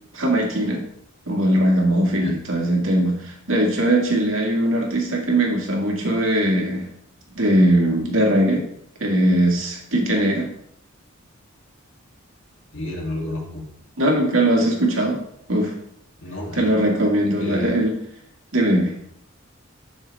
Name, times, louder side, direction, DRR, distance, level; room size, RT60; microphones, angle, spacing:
voice 1, 0.1-0.8 1.3-6.9 7.3-8.6 9.0-10.5 14.0-15.2 15.5-15.7 16.6-18.0 18.5-18.9, right 1 dB, 75° right, -1 dB, 2.1 m, -20 dB
voice 2, 12.7-13.6 16.2-16.6 17.4-17.8, left 1 dB, 70° left, -2 dB, 2.7 m, -30 dB
12.5 x 6.6 x 3.5 m, 0.71 s
head